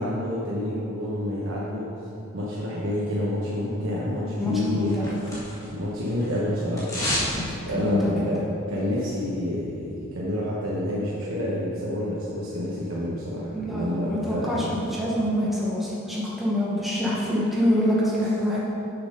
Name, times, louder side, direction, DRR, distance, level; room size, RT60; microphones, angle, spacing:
voice 1, 0.0-1.9 2.3-5.1 5.7-6.9 7.7-14.7 18.2-18.3, left 1 dB, 75° right, -7 dB, 1.1 m, -28 dB
voice 2, 4.4-5.0 7.3-8.3 13.5-18.6, left 1 dB, ahead, -7 dB, 1.0 m, -26 dB
sound 1, 4.6-5.8 6.1-7.3 7.6-7.7, left 1 dB, 15° left, 1.7 m, -30 dB
6.9 x 6.2 x 5.2 m, 3.0 s
head